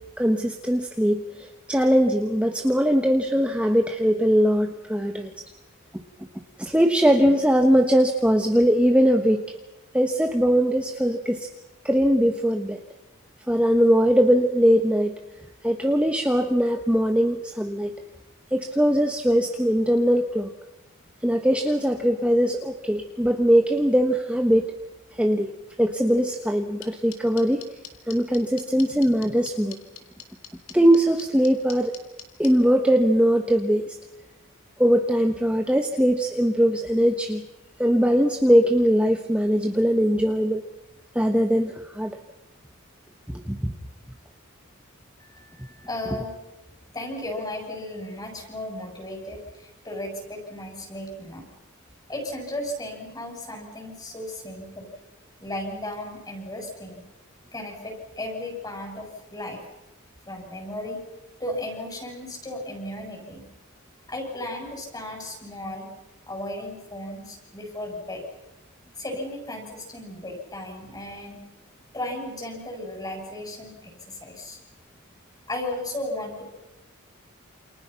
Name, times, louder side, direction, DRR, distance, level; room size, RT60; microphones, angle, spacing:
voice 1, 0.2-5.3 6.6-9.4 9.9-11.5 11.8-12.8 13.5-15.2 15.6-17.9 18.5-20.5 21.2-24.7 25.1-25.5 25.8-27.6 28.1-29.8 30.7-31.9 32.4-33.9 34.8-37.4 37.8-40.6 41.1-42.2 43.3-43.8, equal, 5° right, 4 dB, 1.3 m, -21 dB
sound 1, 26.8-32.5, left 10 dB, 75° left, 3.4 m, -40 dB
voice 2, 45.3-46.3 46.9-51.5 52.1-54.9 55.4-57.1 57.5-59.6 60.3-61.0 61.4-63.5 64.1-65.9 66.3-68.2 69.0-71.4 71.9-74.6 75.5-76.4, left 1 dB, 20° left, 2 dB, 7.4 m, -35 dB
29.0 x 28.5 x 5.9 m, 1.0 s
head